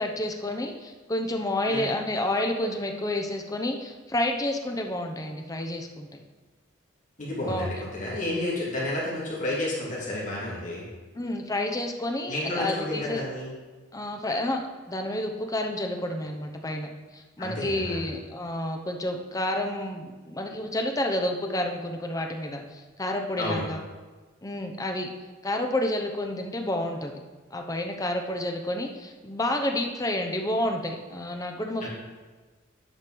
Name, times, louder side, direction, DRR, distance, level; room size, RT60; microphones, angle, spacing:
voice 1, 0.0-6.2 7.4-7.7 11.1-13.2 13.9-23.8 24.4-25.1 25.4-27.2 27.5-31.9, left 1 dB, 15° left, 3 dB, 0.8 m, -30 dB
voice 2, 7.2-10.9 12.3-13.5 17.4-18.1 23.4-23.6 31.8-31.9, left 1 dB, 40° left, -6 dB, 2.6 m, -31 dB
9.0 x 5.2 x 6.1 m, 1.3 s
head